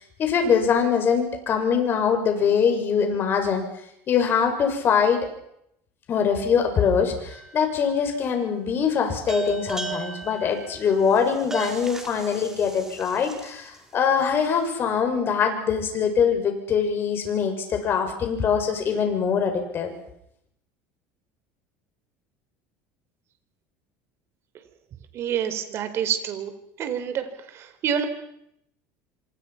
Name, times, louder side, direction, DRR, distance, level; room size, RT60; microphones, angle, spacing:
voice 1, 0.2-3.6 4.1-5.2 6.1-19.9, left 6 dB, 40° left, 5 dB, 6.9 m, -23 dB
sound 1, 7.3-7.9 9.3-13.7, right 3 dB, 10° right, 4.7 m, -34 dB
voice 2, 25.1-26.5 26.8-27.3 27.5-28.0, right 8 dB, 45° right, 9 dB, 4.2 m, -27 dB
27.0 x 26.0 x 6.0 m, 0.76 s
supercardioid pair, 120°, 6 cm